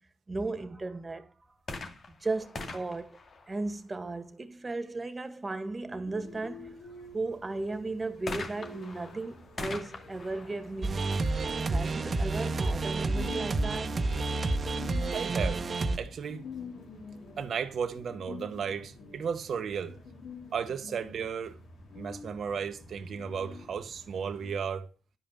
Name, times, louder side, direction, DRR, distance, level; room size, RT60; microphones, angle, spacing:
voice 1, 0.3-1.3 2.2-3.2 3.5-6.8 7.1-11.1 11.7-14.0, right 3 dB, 30° right, 1.9 m, -35 dB
sound 1, 1.6-4.2 8.3-11.9 12.7-12.8, left 3 dB, 55° left, 2.2 m, -42 dB
sound 2, 6.1-24.6, left 4 dB, 80° left, 3.3 m, -48 dB
sound 3, 10.8-16.0, right 3 dB, 50° right, 1.2 m, -29 dB
voice 2, 15.1-15.6 16.0-16.5 17.4-20.0 20.5-21.5 21.9-24.9, right 7 dB, 70° right, 1.0 m, -34 dB
11.0 x 5.3 x 7.4 m
cardioid pair, 65°, 0 cm